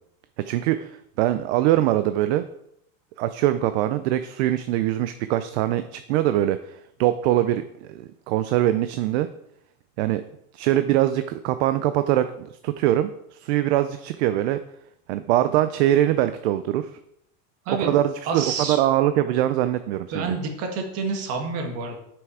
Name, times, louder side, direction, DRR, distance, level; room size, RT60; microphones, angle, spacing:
voice 1, 0.4-2.4 3.2-9.3 10.0-10.2 10.5-14.6 15.1-16.9 17.7-20.4, right 13 dB, 55° right, 11 dB, 0.5 m, -23 dB
voice 2, 18.3-18.8 20.1-22.0, right 4 dB, 40° right, 3 dB, 1.6 m, -28 dB
7.8 x 6.1 x 4.9 m, 0.77 s
supercardioid pair, 170°, 39 cm